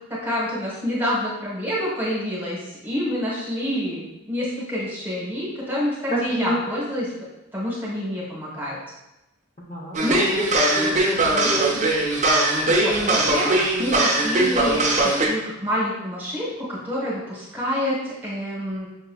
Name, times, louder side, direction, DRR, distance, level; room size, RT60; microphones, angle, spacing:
voice 1, 0.1-7.1 7.5-8.8 10.0-10.3 12.7-18.9, equal, 10° right, -6 dB, 1.0 m, -27 dB
voice 2, 6.1-6.6 9.7-10.0 10.4-10.5 10.8-11.9, right 1 dB, 30° left, -5 dB, 0.7 m, -28 dB
sound 1, 9.9-15.3, right 2 dB, 35° right, 0.6 m, -20 dB
6.0 x 2.8 x 2.2 m, 0.95 s
head